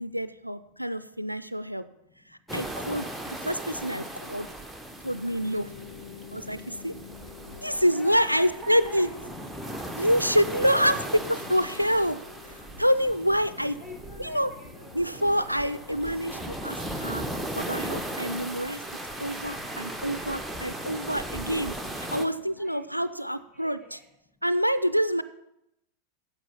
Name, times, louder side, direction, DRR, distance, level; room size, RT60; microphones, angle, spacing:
voice 1, 0.0-1.8 2.3-4.5 5.0-5.7 6.3-6.9 7.6-9.1 10.0-10.9 11.5-12.2 12.5-13.8 14.2-14.5 14.9-17.2 17.5-18.8 19.2-24.0 24.4-25.2, equal, 90° right, 13 dB, 0.3 m, -27 dB
voice 2, 0.7-2.4 7.6-9.1 9.6-10.0 10.5-11.4 13.8-15.5 22.5-24.4, equal, 20° left, -2 dB, 3.4 m, -48 dB
sound 1, 2.5-22.3, right 1 dB, ahead, 0.8 m, -37 dB
sound 2, 5.4-22.6, left 8 dB, 60° left, 0.7 m, -49 dB
9.0 x 7.0 x 5.6 m, 0.84 s
figure-of-eight pair, 90°, 0 cm